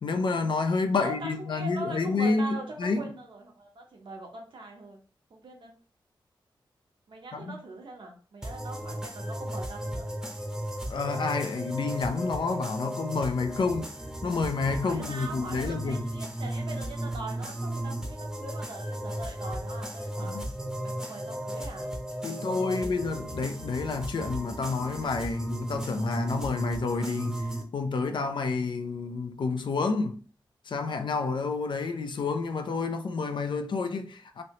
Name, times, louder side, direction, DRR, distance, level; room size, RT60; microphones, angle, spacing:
voice 1, 0.0-3.1 7.3-7.6 10.9-13.9 14.2-16.1 20.2-20.5 22.2-27.5 27.7-30.2 30.7-34.4, left 4 dB, 70° left, 0.5 m, -29 dB
voice 2, 1.0-5.0 5.3-5.7 7.1-10.1 14.8-20.4 20.8-21.9 22.2-23.1, right 2 dB, 80° right, 1.0 m, -42 dB
sound 1, 8.4-27.6, right 1 dB, 5° right, 0.7 m, -35 dB
3.2 x 2.7 x 2.9 m
wide cardioid pair, 105°, 8 cm